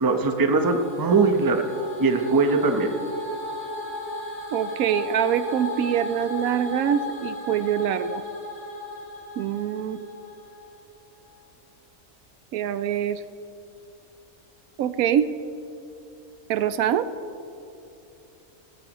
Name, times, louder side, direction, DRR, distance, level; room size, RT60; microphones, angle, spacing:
voice 1, 0.0-1.6 2.0-2.9, right 3 dB, 20° right, 5 dB, 0.6 m, -21 dB
sound 1, 0.6-10.8, left 1 dB, 90° left, 4.0 m, -35 dB
voice 2, 4.5-8.2 9.4-10.0 12.5-13.2 14.8-15.3 16.5-17.1, right 9 dB, 85° right, 13 dB, 1.0 m, -24 dB
18.5 x 14.0 x 3.0 m, 2.8 s
omnidirectional pair, 1.5 m